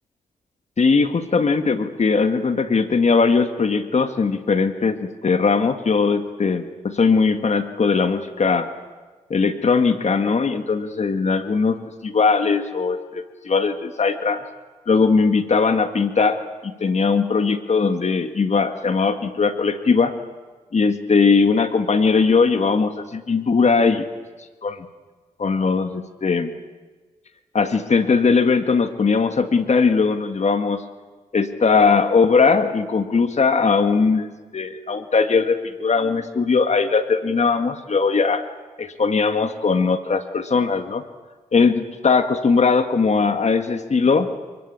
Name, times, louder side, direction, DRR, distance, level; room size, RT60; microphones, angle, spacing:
voice 1, 0.8-8.7 9.3-11.8 12.0-14.4 14.9-16.4 16.6-20.1 20.7-24.0 24.6-24.9 25.4-26.5 27.5-30.8 31.3-34.3 34.5-38.4 38.8-41.0 41.5-44.3, left 4 dB, 50° left, 8 dB, 1.9 m, -19 dB
29.0 x 21.5 x 8.8 m, 1.4 s
cardioid pair, 70°, 15 cm